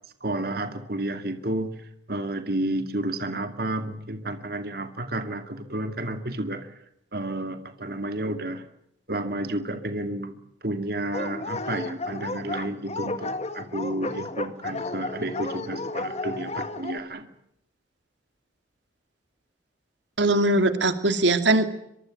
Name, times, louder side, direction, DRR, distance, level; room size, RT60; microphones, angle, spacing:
voice 1, 0.2-6.7 7.1-8.7 9.1-17.3, right 1 dB, 55° right, 7 dB, 2.4 m, -31 dB
Dog, 11.1-17.0, left 2 dB, 40° left, 2.0 m, -33 dB
voice 2, 20.2-21.6, right 2 dB, 85° right, 8 dB, 2.5 m, -21 dB
24.5 x 24.0 x 7.8 m, 0.77 s
head